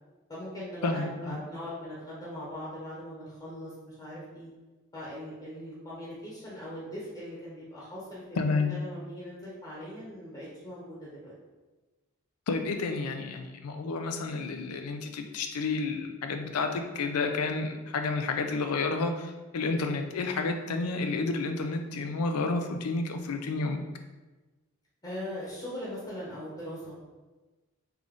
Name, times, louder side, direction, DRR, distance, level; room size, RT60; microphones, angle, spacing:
voice 1, 0.3-4.5 4.9-11.3 25.0-27.0, equal, 15° left, -8 dB, 0.8 m, -40 dB
voice 2, 0.8-1.4 8.4-8.8 12.5-23.8, left 3 dB, 85° left, 6 dB, 0.4 m, -30 dB
3.5 x 2.5 x 3.6 m, 1.2 s
head